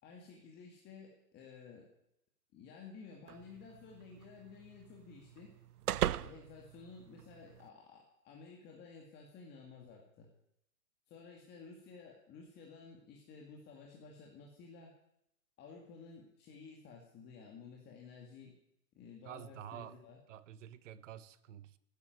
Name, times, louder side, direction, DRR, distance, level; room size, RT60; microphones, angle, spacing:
voice 1, 0.0-1.9 2.5-5.5 6.2-10.3 11.1-14.9 15.6-18.5 18.9-20.2, left 5 dB, 20° left, 0 dB, 2.3 m, -53 dB
sound 1, 3.3-7.7, right 12 dB, 70° right, 0.7 m, -40 dB
voice 2, 19.2-20.0 20.3-21.8, right 11 dB, 50° right, 16 dB, 1.2 m, -49 dB
17.0 x 10.5 x 7.9 m, 0.78 s
hypercardioid pair, 140°, 47 cm